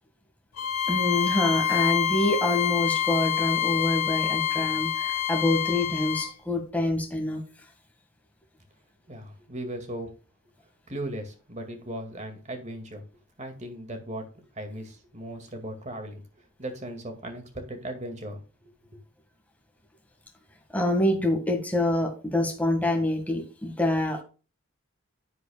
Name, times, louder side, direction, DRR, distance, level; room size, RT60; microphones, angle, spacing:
Bowed string instrument, 0.6-6.3, left 10 dB, 90° left, 1.2 m, -27 dB
voice 1, 0.9-7.4 20.7-24.2, left 1 dB, 5° left, 2 dB, 1.8 m, -26 dB
voice 2, 9.1-10.1 10.9-13.0 13.4-14.3 14.5-18.4, right 1 dB, 35° right, 5 dB, 2.1 m, -37 dB
10.5 x 8.2 x 2.3 m, 0.34 s
head